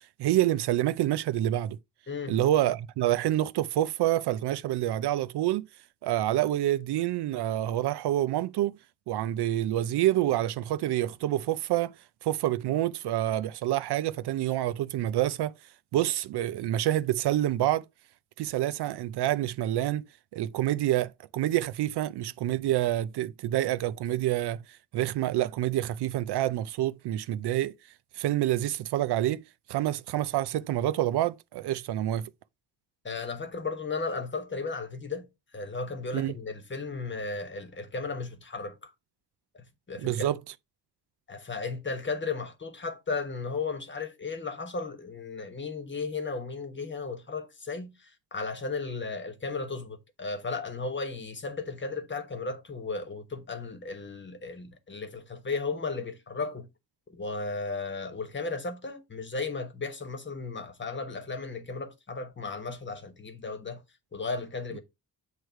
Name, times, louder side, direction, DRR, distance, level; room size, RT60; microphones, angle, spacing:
voice 1, 0.0-1.8 2.3-5.7 6.0-8.8 9.1-11.9 12.2-15.5 15.9-17.8 18.4-20.1 20.3-24.6 24.9-27.7 28.1-29.4 29.7-32.3 36.1-36.3 40.0-40.4, right 13 dB, 75° right, 0.5 m, -27 dB
voice 2, 2.1-2.4 33.0-35.3 35.5-38.9 39.5-40.3 41.3-56.7 57.1-63.8 64.1-64.8, left 4 dB, 30° left, 1.2 m, -35 dB
8.0 x 3.2 x 4.5 m
cardioid pair, 120°, 40 cm